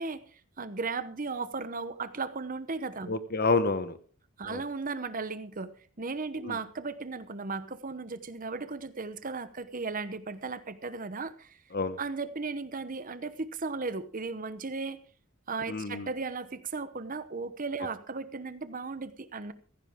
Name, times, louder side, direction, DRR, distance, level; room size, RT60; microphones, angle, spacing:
voice 1, 0.0-3.2 4.4-11.6 12.0-15.0 15.5-19.5, right 4 dB, 40° right, 13 dB, 1.0 m, -36 dB
voice 2, 3.1-3.9 4.5-4.6 6.4-6.6 11.7-12.0 15.7-16.1, left 3 dB, 45° left, 12 dB, 1.1 m, -28 dB
16.0 x 15.0 x 3.7 m, 0.41 s
head